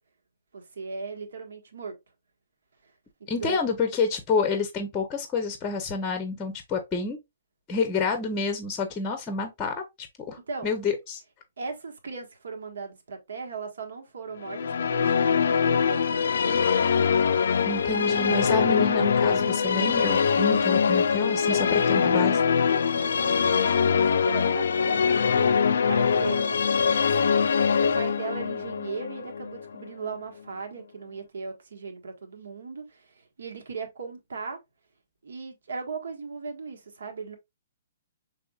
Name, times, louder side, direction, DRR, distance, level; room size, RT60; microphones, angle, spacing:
voice 1, 0.5-2.0 2.8-2.9 3.2-3.6 10.5-10.7 11.6-16.6 21.5-22.0 22.9-26.6 27.0-34.6 35.2-37.4, right 4 dB, 85° right, 1.4 m, -38 dB
voice 2, 3.3-7.2 7.7-9.8 10.3-11.2 17.7-22.4, left 4 dB, 10° left, 0.6 m, -29 dB
Musical instrument, 14.5-29.9, left 6 dB, 75° left, 0.3 m, -23 dB
6.0 x 3.4 x 2.3 m
hypercardioid pair, 170°, 0 cm